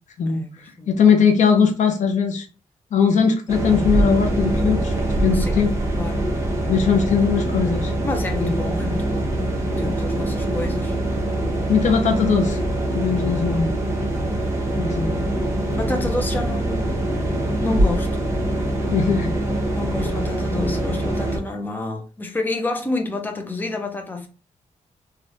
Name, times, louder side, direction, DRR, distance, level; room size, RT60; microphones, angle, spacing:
voice 1, 0.3-0.9 5.3-5.6 5.9-6.3 8.0-9.4 9.8-11.0 15.2-17.0 17.6-18.2 19.7-24.3, left 2 dB, 15° left, 0.6 m, -29 dB
voice 2, 0.9-2.5 2.9-5.7 6.7-7.9 8.4-8.5 8.9-9.0 11.7-12.6 12.9-13.7 14.8-15.2 18.9-19.3, left 6 dB, 75° left, 0.7 m, -19 dB
sound 1, 3.5-21.4, right 1 dB, 20° right, 1.1 m, -23 dB
3.2 x 2.4 x 2.7 m
cardioid pair, 105°, 13 cm